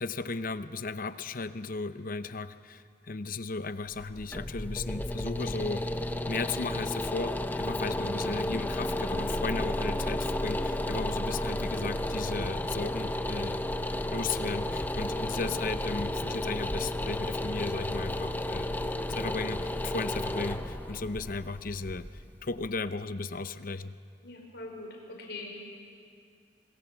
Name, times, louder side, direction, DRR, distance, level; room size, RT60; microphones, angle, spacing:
voice 1, 0.0-5.9 6.3-13.6 14.1-18.7 19.1-23.9, left 3 dB, 50° left, 12 dB, 0.8 m, -35 dB
sound 1, 3.9-22.9, left 1 dB, 10° left, 0.7 m, -32 dB
voice 2, 24.2-25.6, left 2 dB, 65° left, 0 dB, 4.9 m, -43 dB
27.0 x 22.0 x 7.2 m, 2.3 s
head